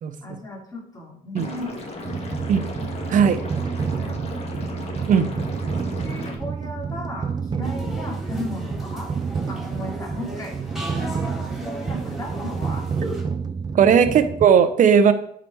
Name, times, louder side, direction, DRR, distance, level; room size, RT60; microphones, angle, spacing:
voice 1, 0.2-2.7 3.9-4.7 5.2-5.3 6.0-9.1 9.5-10.6 11.0-12.9 14.0-14.1, left 1 dB, 20° left, -2 dB, 3.2 m, -36 dB
Liquid, 1.4-6.4, left 2 dB, 35° left, 2.0 m, -35 dB
sound 1, 2.0-14.5, right 5 dB, 25° right, 0.5 m, -29 dB
sound 2, 7.6-13.2, equal, ahead, 3.7 m, -36 dB
voice 2, 13.7-15.1, right 7 dB, 50° right, 10 dB, 0.9 m, -16 dB
11.0 x 5.1 x 4.7 m, 0.69 s
cardioid pair, 110°, 17 cm